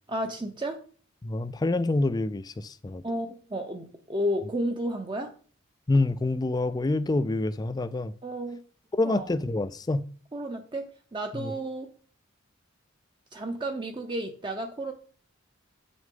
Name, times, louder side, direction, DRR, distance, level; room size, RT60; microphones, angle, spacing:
voice 1, 0.1-0.8 3.0-5.3 8.2-8.6 9.0-9.3 10.3-11.9 13.3-14.9, right 1 dB, 25° right, 0.6 m, -32 dB
voice 2, 1.2-3.0 5.9-8.1 8.9-10.0 11.4-11.5, left 2 dB, 20° left, 0.3 m, -27 dB
8.3 x 6.2 x 3.7 m
head